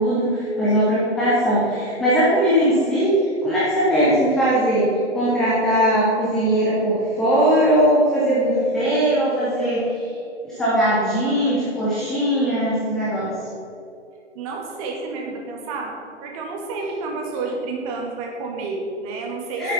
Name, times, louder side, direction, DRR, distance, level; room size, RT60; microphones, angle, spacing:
voice 1, 0.0-9.9 10.4-13.3 19.6-19.7, equal, ahead, -9 dB, 0.4 m, -20 dB
voice 2, 14.3-15.9 16.2-19.7, right 3 dB, 30° right, 0 dB, 2.2 m, -30 dB
10.0 x 7.9 x 5.7 m, 2.7 s
figure-of-eight pair, 125°, 35 cm